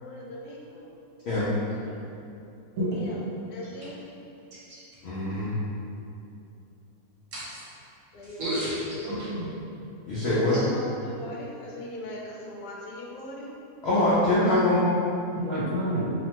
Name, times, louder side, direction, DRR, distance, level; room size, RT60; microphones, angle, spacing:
voice 1, 0.0-0.9 2.9-3.1 3.5-4.0 8.1-8.6 9.0-9.2 10.5-13.5, left 1 dB, 90° left, -3 dB, 1.1 m, -39 dB
voice 2, 2.8-3.1 4.7-4.8 7.3-7.6 8.2-9.5 10.1-10.6 15.4-16.1, right 1 dB, 60° right, -8 dB, 1.0 m, -30 dB
voice 3, 5.0-5.6 10.1-10.6 13.8-14.8, left 1 dB, 70° left, -10 dB, 0.6 m, -23 dB
2.8 x 2.1 x 2.8 m, 2.7 s
omnidirectional pair, 1.6 m